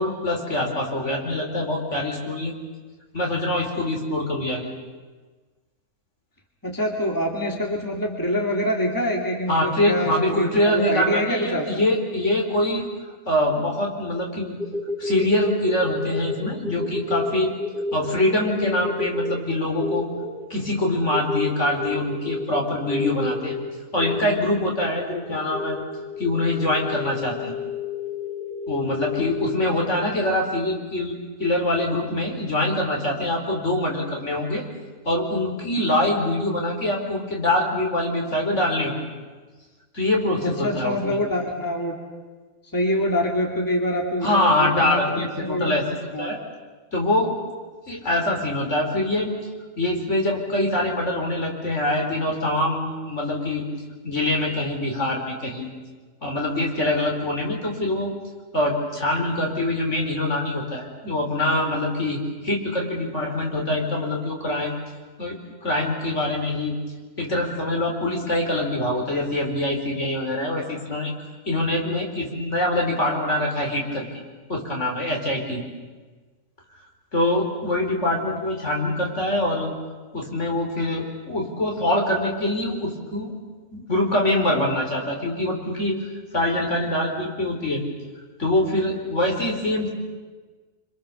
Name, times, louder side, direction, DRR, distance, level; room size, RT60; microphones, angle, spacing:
voice 1, 0.0-2.5 3.1-4.7 9.5-12.9 13.3-14.6 15.0-17.5 17.9-20.1 20.5-23.6 23.9-25.8 26.2-27.5 28.7-34.6 35.0-39.1 39.9-41.2 44.2-45.8 46.2-46.4 46.9-47.4 47.9-49.3 49.8-53.7 54.0-55.7 56.2-58.1 58.5-64.8 65.2-66.8 67.2-71.1 71.5-74.1 74.5-75.6 77.1-79.7 80.1-83.3 83.7-87.8 88.4-89.9, left 1 dB, 50° left, 0 dB, 4.7 m, -24 dB
voice 2, 6.6-11.7 40.4-42.0 42.7-45.8 46.1-46.4, equal, 15° left, 1 dB, 2.8 m, -25 dB
sound 1, 14.6-30.3, left 2 dB, 35° right, 1.6 m, -31 dB
27.5 x 26.5 x 7.0 m, 1.3 s
omnidirectional pair, 1.6 m